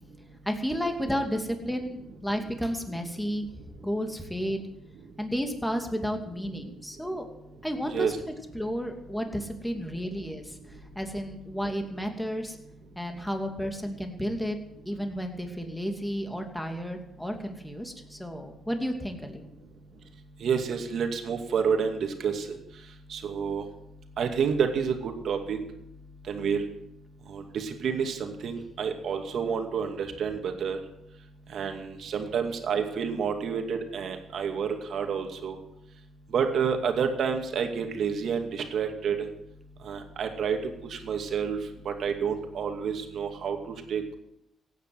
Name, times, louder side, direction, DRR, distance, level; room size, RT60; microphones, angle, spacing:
voice 1, 0.5-4.6 5.2-7.3 7.6-8.1 8.5-10.6 11.0-12.6 13.0-14.6 14.9-19.4, equal, 5° left, 4 dB, 2.6 m, -32 dB
voice 2, 20.4-22.4 23.1-23.6 24.2-25.6 26.3-26.6 27.3-30.8 31.5-35.5 36.3-39.2 39.9-40.6 40.9-41.6 41.9-44.1, right 6 dB, 65° right, 5 dB, 2.4 m, -29 dB
16.5 x 9.2 x 7.8 m, 0.84 s
cardioid pair, 90°, 0 cm